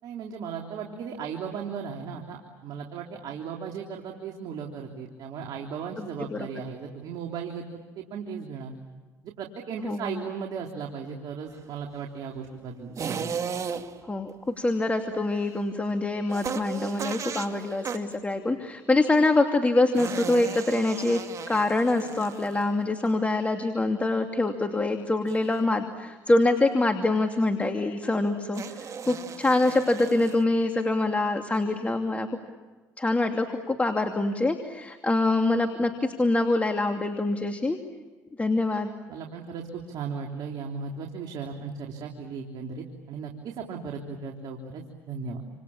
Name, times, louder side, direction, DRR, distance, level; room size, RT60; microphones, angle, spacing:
voice 1, 0.0-8.7 9.2-13.3 39.1-45.4, right 6 dB, 65° right, 1 dB, 3.4 m, -36 dB
voice 2, 6.0-6.4 9.8-10.2 14.1-21.2 21.5-32.3 33.0-37.8 38.4-38.9, left 2 dB, 20° left, 5 dB, 2.6 m, -25 dB
sound 1, 13.0-14.1 16.3-18.2 19.9-22.8 25.3-25.6 28.5-30.4, right 6 dB, 45° right, 2.1 m, -36 dB
29.0 x 27.5 x 7.3 m, 1.3 s
supercardioid pair, 75°, 7 cm